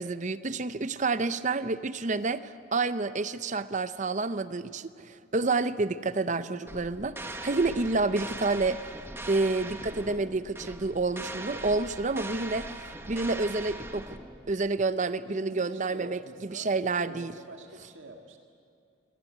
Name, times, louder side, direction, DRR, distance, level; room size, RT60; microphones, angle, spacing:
voice 1, 0.0-8.8 9.3-12.7 13.1-14.1 14.5-16.2 16.5-17.3, right 3 dB, 35° right, 14 dB, 0.7 m, -29 dB
sound 1, 6.7-14.6, right 2 dB, 10° right, 1.1 m, -41 dB
voice 2, 15.1-18.4, right 1 dB, 65° right, 3 dB, 2.0 m, -46 dB
25.0 x 17.5 x 9.3 m, 2.3 s
head